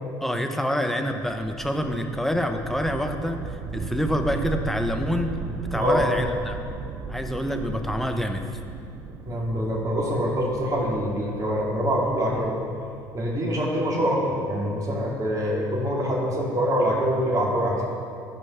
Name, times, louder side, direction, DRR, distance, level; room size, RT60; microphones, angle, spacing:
voice 1, 0.2-3.4 3.7-5.3 5.7-6.6 7.1-8.5, equal, ahead, 5 dB, 1.1 m, -26 dB
sound 1, 1.1-14.2, right 4 dB, 60° right, 0.9 m, -37 dB
voice 2, 9.2-12.6 13.1-17.8, equal, 35° right, -4 dB, 2.6 m, -25 dB
13.5 x 5.2 x 5.8 m, 2.4 s
hypercardioid pair, 70°, 11 cm